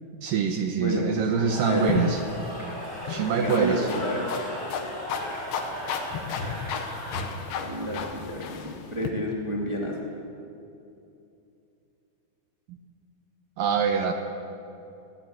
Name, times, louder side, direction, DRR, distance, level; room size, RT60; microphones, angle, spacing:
voice 1, 0.2-2.2 3.1-3.9 13.6-14.1, right 6 dB, 75° right, 5 dB, 2.1 m, -25 dB
Cheering / Crowd, 1.2-7.6, equal, 20° right, 6.5 m, -37 dB
sound 1, 1.9-9.1, left 6 dB, 75° left, 3.5 m, -34 dB
voice 2, 3.3-4.3 7.6-10.2, equal, 50° right, -2 dB, 0.3 m, -30 dB
21.0 x 17.0 x 8.0 m, 2.7 s
omnidirectional pair, 5.2 m